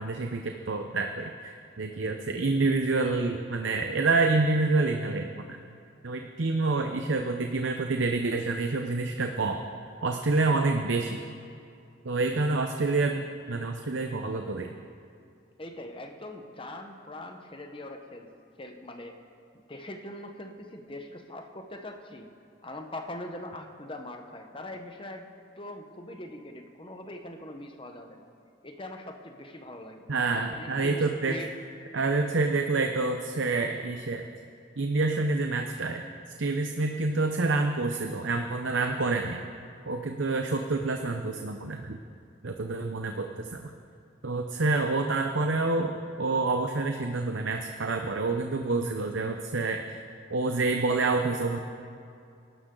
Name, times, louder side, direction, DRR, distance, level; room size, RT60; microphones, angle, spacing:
voice 1, 0.0-5.6 6.0-9.6 10.0-11.2 12.0-14.7 30.1-31.4 31.9-34.3 34.8-36.1 36.4-39.4 39.9-42.0 42.4-43.7 44.2-49.8 50.3-51.6, right 3 dB, 75° right, 4 dB, 0.7 m, -27 dB
voice 2, 15.6-18.3 18.6-19.2 19.7-22.3 22.6-28.3 28.6-31.5, left 1 dB, 25° left, 4 dB, 1.1 m, -42 dB
24.5 x 12.5 x 3.9 m, 2.5 s
head